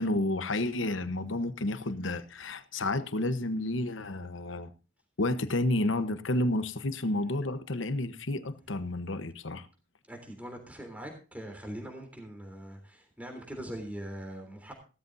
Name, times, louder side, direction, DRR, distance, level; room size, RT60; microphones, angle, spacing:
voice 1, 0.0-4.7 5.2-9.7, left 1 dB, 85° left, 1.1 m, -30 dB
voice 2, 10.1-14.7, right 1 dB, 10° right, 3.4 m, -42 dB
17.0 x 13.5 x 2.7 m
head